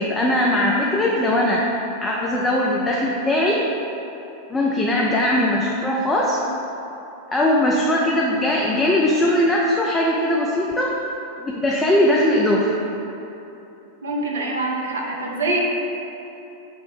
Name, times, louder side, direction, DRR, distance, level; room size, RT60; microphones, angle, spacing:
voice 1, 0.0-1.6 2.0-3.6 4.5-6.4 7.3-10.9 11.4-12.8, left 1 dB, 10° left, -3 dB, 0.4 m, -20 dB
voice 2, 14.0-15.6, right 2 dB, 65° right, -1 dB, 0.6 m, -24 dB
5.4 x 2.0 x 4.2 m, 3.0 s
figure-of-eight pair, 90°, 0 cm